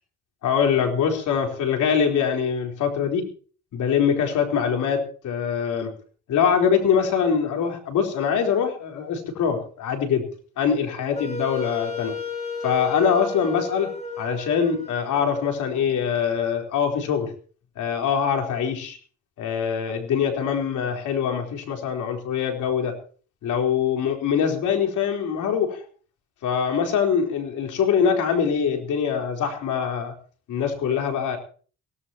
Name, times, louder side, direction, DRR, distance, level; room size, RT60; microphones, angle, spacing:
voice 1, 0.4-3.3 3.7-5.9 6.3-10.2 10.6-12.2 12.6-17.3 17.8-19.0 19.4-22.9 23.4-25.8 26.4-30.1 30.5-31.4, left 7 dB, 80° left, 3 dB, 4.2 m, -23 dB
Wind instrument woodwind instrument, 11.1-16.1, left 4 dB, 20° left, 4.6 m, -33 dB
22.5 x 17.5 x 3.0 m, 0.41 s
cardioid pair, 90°, 30 cm